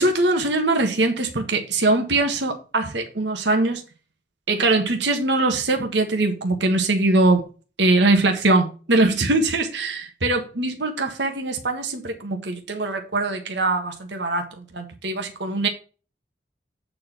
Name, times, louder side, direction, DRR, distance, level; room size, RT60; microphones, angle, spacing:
voice 1, 0.0-3.8 4.5-7.4 7.8-15.7, right 2 dB, 80° right, 1.6 m, -22 dB
8.6 x 4.8 x 5.9 m
head